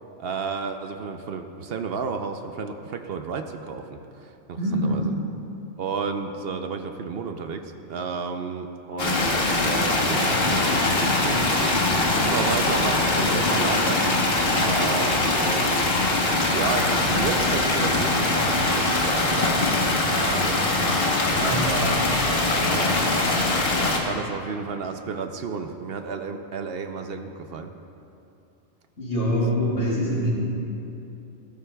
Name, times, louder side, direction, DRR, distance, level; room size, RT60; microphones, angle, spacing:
voice 1, 0.2-5.0 5.8-11.8 12.2-14.0 14.6-16.0 16.5-22.0 22.3-23.6 24.0-27.7, right 5 dB, 65° right, 6 dB, 0.8 m, -32 dB
voice 2, 4.6-5.1 21.4-21.7 22.5-22.8 29.0-30.3, equal, 75° left, -5 dB, 3.0 m, -25 dB
sound 1, 9.0-24.0, left 2 dB, 55° left, 1.3 m, -22 dB
15.5 x 13.0 x 2.3 m, 2.8 s
omnidirectional pair, 1.2 m